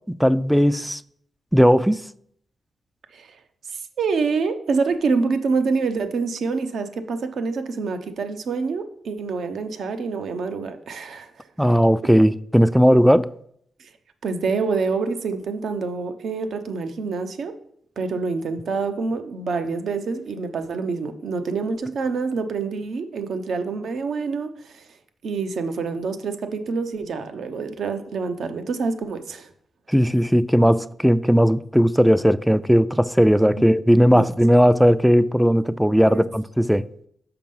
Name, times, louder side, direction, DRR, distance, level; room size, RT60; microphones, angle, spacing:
voice 1, 0.2-1.0 1.5-2.0 11.6-13.3 29.9-36.9, equal, ahead, 0.3 m, -17 dB
voice 2, 3.7-11.3 13.8-13.9 14.2-17.5 18.0-24.8 25.2-29.5 34.1-34.3 36.1-36.2, right 4 dB, 75° right, 0.8 m, -26 dB
5.9 x 5.4 x 5.4 m
cardioid pair, 70°, 0 cm